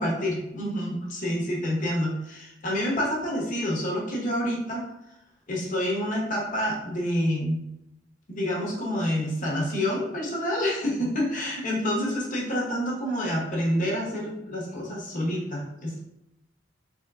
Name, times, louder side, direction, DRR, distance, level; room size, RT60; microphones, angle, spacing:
voice 1, 0.0-4.8 5.5-7.6 8.3-16.0, equal, 45° left, -3 dB, 1.0 m, -28 dB
3.7 x 3.6 x 2.3 m, 0.84 s
head